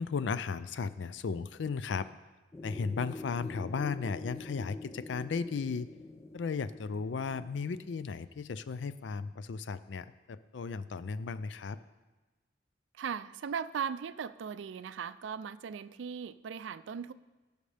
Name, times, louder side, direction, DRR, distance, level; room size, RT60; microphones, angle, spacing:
voice 1, 0.0-2.1 2.6-5.9 6.3-11.8, left 5 dB, 75° left, 14 dB, 0.4 m, -35 dB
sound 1, 2.5-8.0, left 2 dB, 15° left, 0.4 m, -46 dB
voice 2, 12.9-17.1, right 7 dB, 80° right, 15 dB, 0.4 m, -38 dB
16.5 x 6.6 x 3.4 m, 1.2 s
head